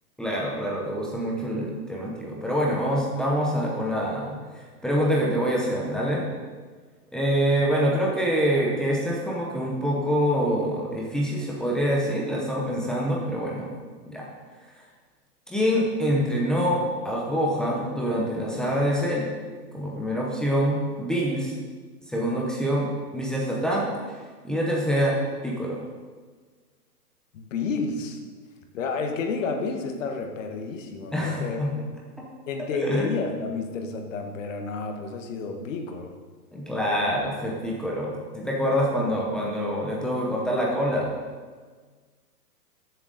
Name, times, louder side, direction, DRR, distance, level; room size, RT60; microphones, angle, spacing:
voice 1, 0.2-6.2 7.1-13.7 14.1-14.2 15.5-19.3 19.7-21.5 22.1-23.9 24.4-25.1 25.4-25.8 31.1-31.7 32.8-33.1 36.5-41.1, equal, ahead, -4 dB, 0.7 m, -25 dB
voice 2, 27.3-28.2 28.7-31.6 32.5-36.1, left 4 dB, 50° left, 4 dB, 1.6 m, -30 dB
13.5 x 7.5 x 4.0 m, 1.5 s
hypercardioid pair, 145°, 48 cm